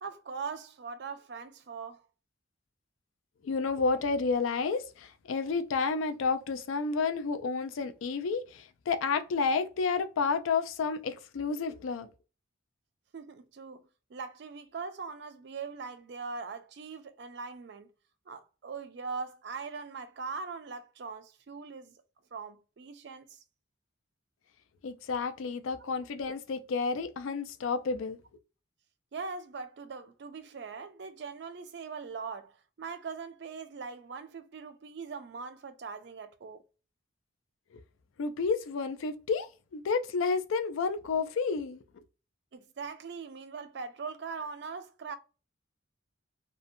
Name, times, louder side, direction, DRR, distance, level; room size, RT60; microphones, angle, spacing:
voice 1, 0.0-2.0 13.1-17.9 18.3-22.0 22.3-23.4 25.8-25.9 29.1-36.6 42.5-45.2, right 5 dB, 55° right, 0.4 m, -41 dB
voice 2, 3.4-12.1 24.8-28.2 38.2-41.8, left 4 dB, 80° left, 0.4 m, -30 dB
2.7 x 2.1 x 2.5 m
head